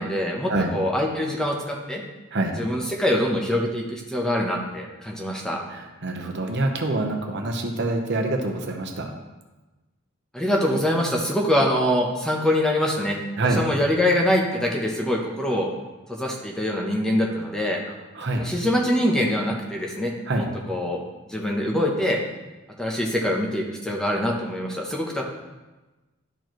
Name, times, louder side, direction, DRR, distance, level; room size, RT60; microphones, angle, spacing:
voice 1, 0.0-2.0 2.6-5.6 10.3-13.2 13.6-15.7 16.1-17.8 18.4-20.1 20.7-21.0 21.3-22.2 22.8-25.2, left 1 dB, 5° left, -1 dB, 0.8 m, -24 dB
voice 2, 5.7-9.1 13.4-13.6 17.9-18.5 20.3-20.5, right 2 dB, 55° right, 3 dB, 0.9 m, -26 dB
12.0 x 4.6 x 3.1 m, 1.1 s
head